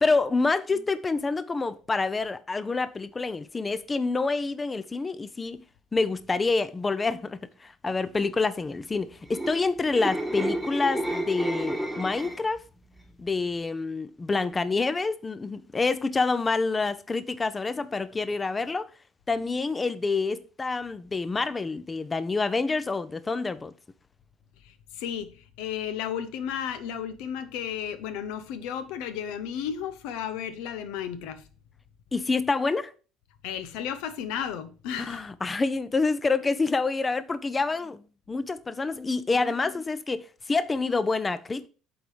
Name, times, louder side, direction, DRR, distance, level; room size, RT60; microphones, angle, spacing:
voice 1, 0.0-5.6 5.9-12.6 13.2-18.9 19.3-23.7 32.1-32.9 35.1-38.0 38.3-41.7, left 3 dB, 25° left, 0.5 m, -27 dB
sound 1, 9.1-12.6 13.0-13.3, right 1 dB, ahead, 1.3 m, -31 dB
voice 2, 24.6-31.5 33.4-35.3, left 9 dB, 85° left, 0.8 m, -33 dB
7.8 x 3.9 x 5.0 m
supercardioid pair, 95°, 0 cm